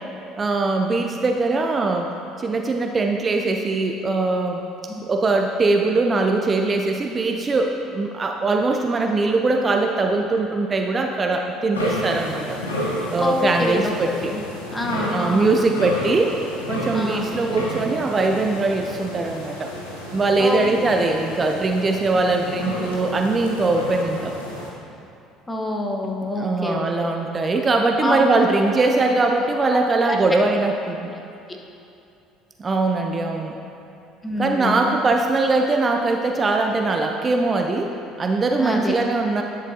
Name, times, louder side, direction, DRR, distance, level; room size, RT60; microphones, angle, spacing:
voice 1, 0.4-2.1 2.4-4.6 5.0-12.6 13.1-14.3 15.1-16.4 16.7-19.7 20.1-24.3 26.3-31.1 32.6-33.5 34.4-37.9 38.2-39.4, right 3 dB, 30° right, 3 dB, 0.5 m, -21 dB
sound 1, 11.7-24.7, left 1 dB, 90° left, 0.9 m, -31 dB
voice 2, 13.2-14.4 14.7-15.8 16.9-17.2 20.4-20.6 25.5-27.1 28.0-28.3 30.0-30.2 34.2-34.9 38.6-39.0, left 1 dB, 15° left, 0 dB, 1.1 m, -26 dB
10.5 x 6.3 x 2.8 m, 2.7 s
hypercardioid pair, 60°, 0 cm